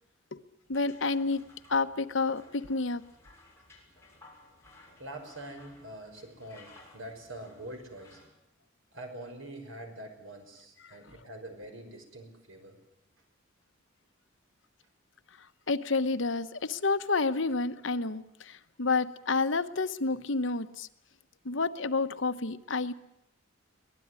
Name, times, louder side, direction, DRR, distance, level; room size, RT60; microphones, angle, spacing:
voice 1, 0.7-1.4 1.7-3.0 10.8-10.9 15.7-20.9 21.4-22.9, left 3 dB, 65° left, 11 dB, 1.1 m, -29 dB
sound 1, 0.7-8.3, left 2 dB, 15° left, 7.0 m, -58 dB
voice 2, 5.0-8.3 8.9-12.8, right 1 dB, 75° right, 5 dB, 6.0 m, -45 dB
23.5 x 18.5 x 9.7 m, 0.83 s
head